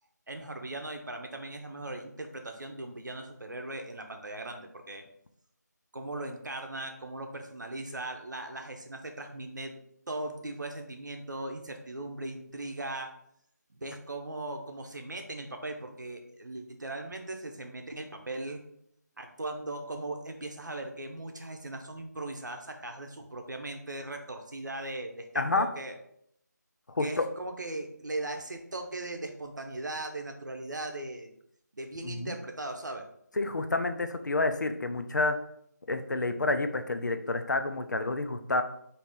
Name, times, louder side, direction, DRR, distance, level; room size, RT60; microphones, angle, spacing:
voice 1, 0.3-5.0 5.9-9.8 10.1-13.1 13.7-18.6 19.2-25.9 27.0-31.3 31.7-33.1, right 2 dB, 80° right, 4 dB, 0.9 m, -39 dB
voice 2, 25.4-25.7 26.9-27.3 32.0-32.3 33.4-35.4 35.9-38.6, left 2 dB, 75° left, 8 dB, 0.5 m, -29 dB
4.1 x 2.8 x 3.6 m, 0.71 s
figure-of-eight pair, 175°, 10 cm